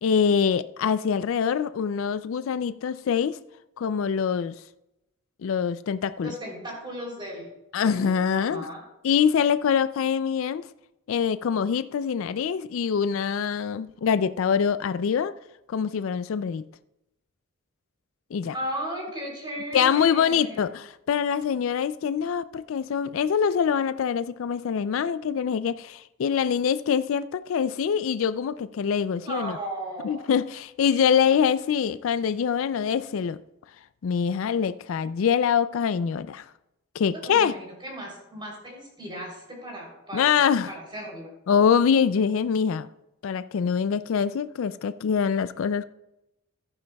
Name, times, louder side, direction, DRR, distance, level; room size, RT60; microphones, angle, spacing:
voice 1, 0.0-3.4 3.8-4.5 5.4-6.3 7.7-8.6 9.0-10.7 11.1-15.3 15.7-16.6 18.3-18.5 19.7-29.6 30.0-33.4 34.0-36.4 37.0-37.5 40.1-40.7 41.5-42.9 43.2-45.8, left 7 dB, 65° left, 0.3 m, -24 dB
voice 2, 6.2-7.5 7.8-8.8 18.5-20.8 29.2-30.3 37.1-41.3, right 1 dB, 25° right, 3.3 m, -36 dB
14.5 x 9.8 x 2.3 m
head